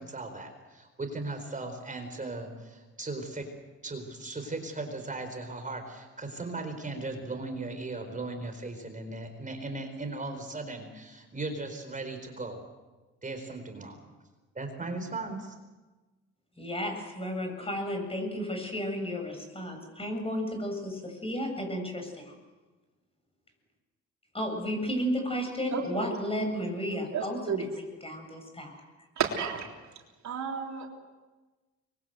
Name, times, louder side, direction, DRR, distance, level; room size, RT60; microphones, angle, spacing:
voice 1, 0.0-3.5 3.8-12.6 13.2-14.0 14.5-15.5, right 2 dB, 25° right, 6 dB, 4.4 m, -37 dB
voice 2, 16.6-22.3 24.3-28.8, equal, 20° left, 4 dB, 7.6 m, -33 dB
voice 3, 25.7-26.7 27.1-27.7 29.2-29.7 30.2-30.9, right 6 dB, 65° right, 1 dB, 3.7 m, -32 dB
24.5 x 22.0 x 8.0 m, 1.2 s
cardioid pair, 90°, 30 cm